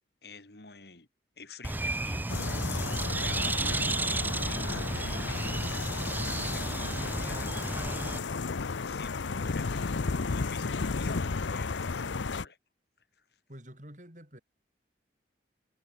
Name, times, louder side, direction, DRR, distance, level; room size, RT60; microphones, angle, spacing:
voice 1, 0.2-1.1 1.4-2.8 3.2-12.6, left 3 dB, 60° left, 2.5 m, -47 dB
Bird, 1.6-8.2, right 2 dB, 10° right, 0.4 m, -32 dB
sound 1, 2.3-12.4, left 4 dB, 90° left, 0.7 m, -34 dB
voice 2, 13.5-14.4, equal, 40° right, 6.7 m, -49 dB
head